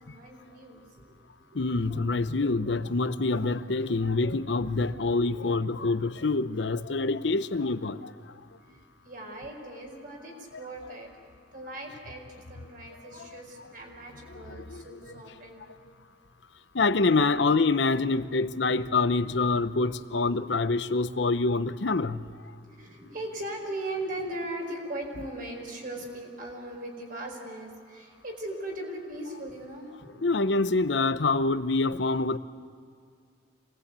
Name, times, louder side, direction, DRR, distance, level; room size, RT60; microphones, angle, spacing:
voice 1, 0.0-1.6 8.6-11.1 11.5-15.6 17.1-17.3 20.3-20.5 22.6-30.3, right 1 dB, 50° right, 1 dB, 5.0 m, -39 dB
voice 2, 1.5-8.1 14.7-14.8 16.7-22.3 30.2-32.4, left 3 dB, 75° left, 12 dB, 0.8 m, -26 dB
26.5 x 19.5 x 8.2 m, 2.3 s
head